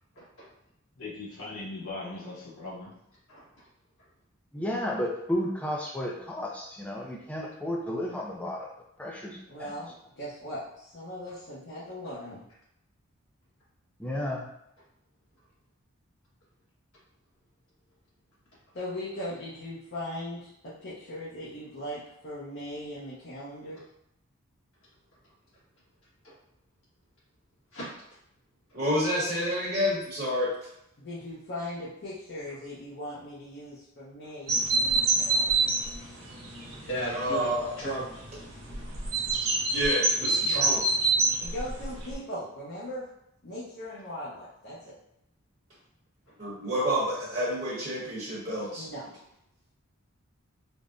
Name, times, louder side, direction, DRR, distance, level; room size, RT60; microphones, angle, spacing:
voice 1, 0.1-0.5 3.3-3.7 23.7-23.8 26.2-26.4 27.7-27.9 36.6-37.5 37.8-38.0, right 1 dB, 70° left, -8 dB, 1.4 m, -36 dB
voice 2, 1.0-2.9, left 2 dB, 85° left, -5 dB, 0.8 m, -39 dB
voice 3, 4.5-8.7 9.0-9.4 14.0-14.5, left 1 dB, 5° left, -1 dB, 0.4 m, -32 dB
voice 4, 9.5-12.4 18.7-23.8 31.0-35.7 40.4-40.6 41.4-43.1 43.4-44.9 48.7-49.0, left 1 dB, 50° left, -9 dB, 0.7 m, -39 dB
voice 5, 28.7-30.5 37.1-37.7 39.7-40.8 46.4-48.9, equal, 40° right, -9 dB, 0.9 m, -29 dB
sound 1, 34.5-42.2, right 3 dB, 85° right, 0.7 m, -27 dB
3.4 x 2.1 x 2.5 m, 0.79 s
head